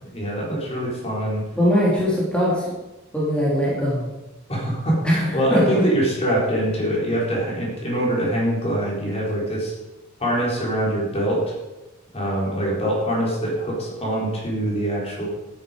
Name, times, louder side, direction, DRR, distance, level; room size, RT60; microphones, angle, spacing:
voice 1, 0.1-1.4 4.5-9.7 10.2-11.5 12.1-15.3, right 1 dB, 30° left, -4 dB, 4.4 m, -24 dB
voice 2, 1.5-2.7 3.1-4.1 5.0-5.8, equal, 5° left, -7 dB, 3.3 m, -21 dB
13.5 x 9.8 x 5.3 m, 1.0 s
head